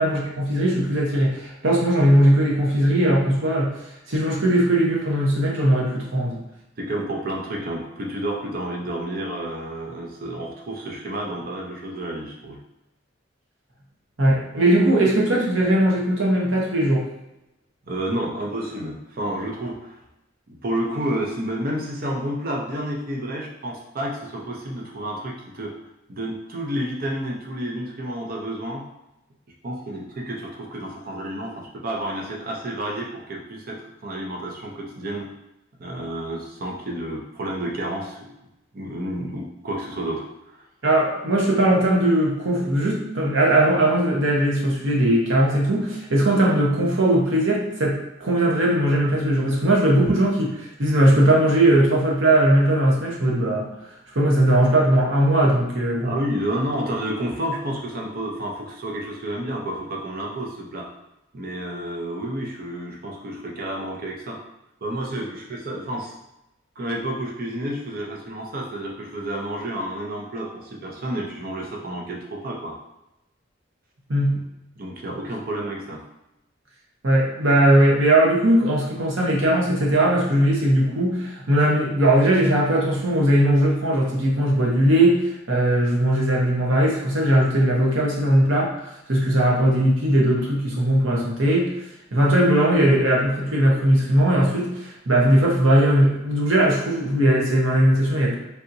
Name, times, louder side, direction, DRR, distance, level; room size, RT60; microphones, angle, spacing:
voice 1, 0.0-3.7 4.1-6.4 14.2-17.0 40.8-50.5 50.8-53.7 54.1-56.1 74.1-74.4 77.0-88.7 89.1-91.7 92.1-98.3, right 1 dB, 85° right, -3 dB, 0.9 m, -19 dB
voice 2, 6.8-12.6 14.2-14.4 17.9-20.0 20.5-25.8 26.1-28.9 29.6-35.3 35.8-38.4 38.7-40.6 56.0-60.9 61.3-64.4 64.8-66.2 66.8-72.7 74.3-74.4 74.8-76.0, right 1 dB, 50° right, -1 dB, 0.6 m, -30 dB
3.4 x 2.8 x 2.6 m, 0.90 s
head